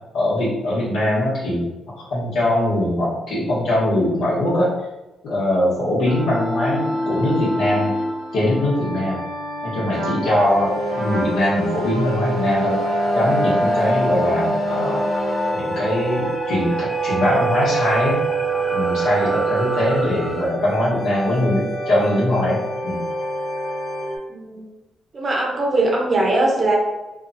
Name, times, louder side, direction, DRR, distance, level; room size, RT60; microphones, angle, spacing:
voice 1, 0.1-1.7 2.1-4.7 5.2-7.9 8.3-9.2 9.6-12.8 13.1-15.0 15.5-18.2 18.7-23.0, left 1 dB, 80° left, -7 dB, 1.2 m, -21 dB
sound 1, 6.1-24.2, right 2 dB, 60° left, 1.0 m, -26 dB
Trumpet, 9.9-15.6, equal, 85° right, 1.1 m, -26 dB
sound 2, 13.7-20.5, left 1 dB, 20° left, 0.3 m, -32 dB
voice 2, 24.3-24.7 25.1-26.8, right 2 dB, 35° right, -1 dB, 0.7 m, -20 dB
2.9 x 2.3 x 2.6 m, 1.0 s
cardioid pair, 120°, 0 cm